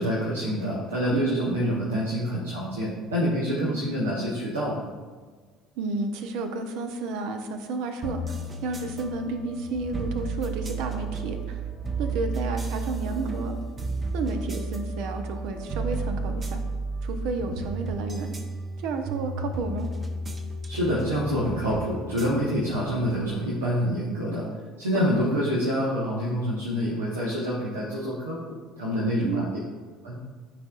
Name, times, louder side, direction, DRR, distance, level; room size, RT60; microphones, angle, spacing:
voice 1, 0.0-4.8 20.7-24.5 24.8-29.5 30.0-30.2, equal, 80° right, -7 dB, 1.3 m, -27 dB
voice 2, 1.1-1.6 3.6-3.8 5.8-8.4 8.6-11.6 12.0-13.5 14.1-16.6 17.0-18.3 18.8-19.9 24.9-25.1 29.2-29.6, right 3 dB, 60° right, 6 dB, 0.8 m, -31 dB
sound 1, 8.0-23.3, right 3 dB, 30° right, 0.9 m, -33 dB
12.5 x 5.1 x 2.5 m, 1.5 s
figure-of-eight pair, 60°, 0 cm